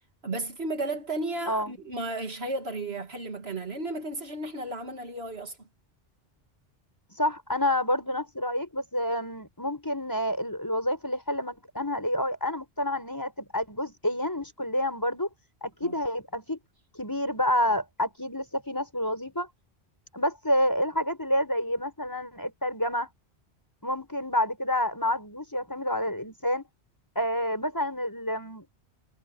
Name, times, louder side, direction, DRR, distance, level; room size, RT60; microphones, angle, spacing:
voice 1, 0.2-5.7 15.8-15.9, right 2 dB, 70° right, 2.5 m, -34 dB
voice 2, 7.2-15.3 15.6-16.6 17.0-19.5 20.1-23.1 23.8-26.6 27.1-28.6, left 1 dB, 20° left, 5.0 m, -28 dB
omnidirectional pair, 1.1 m